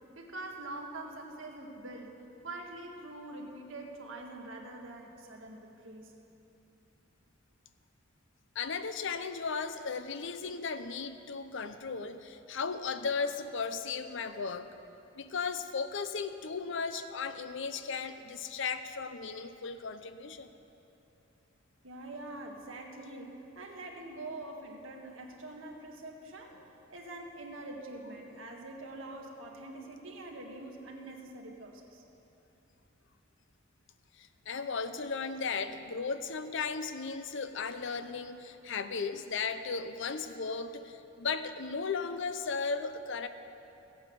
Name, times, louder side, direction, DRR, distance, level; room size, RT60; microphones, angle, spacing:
voice 1, 0.1-2.1 2.4-6.1 21.8-26.6 26.9-32.0, right 2 dB, 70° right, 1 dB, 1.7 m, -44 dB
voice 2, 8.6-14.7 15.2-20.5 34.2-43.3, left 5 dB, 65° left, 10 dB, 0.7 m, -36 dB
16.0 x 8.7 x 7.0 m, 2.9 s
head